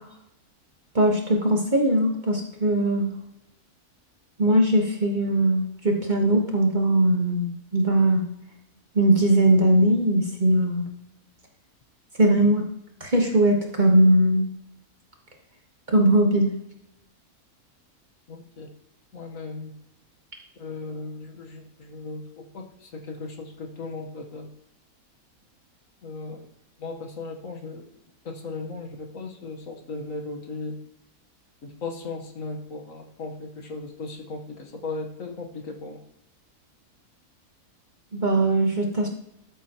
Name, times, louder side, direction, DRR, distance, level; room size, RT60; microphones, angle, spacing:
voice 1, 0.9-3.1 4.4-8.2 8.9-10.8 12.2-12.6 13.0-14.5 15.9-16.5 38.1-39.1, right 1 dB, 30° right, 1 dB, 1.3 m, -20 dB
voice 2, 18.3-18.7 19.1-19.7 20.6-24.5 26.0-26.5 26.8-27.9 28.2-30.8 31.6-36.0, left 3 dB, 60° left, 2 dB, 1.6 m, -37 dB
13.5 x 7.3 x 3.0 m, 0.81 s
omnidirectional pair, 1.6 m